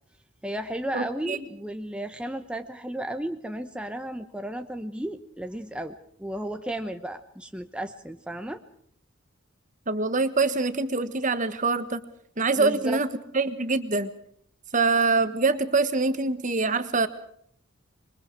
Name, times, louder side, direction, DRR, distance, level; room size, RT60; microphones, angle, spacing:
voice 1, 0.4-8.6 12.6-13.0, right 1 dB, 5° right, 6 dB, 0.9 m, -34 dB
voice 2, 0.9-1.4 9.9-12.0 12.4-13.1 13.3-14.1 14.7-17.1, right 3 dB, 35° right, 11 dB, 1.4 m, -24 dB
26.5 x 23.0 x 4.7 m, 0.66 s
head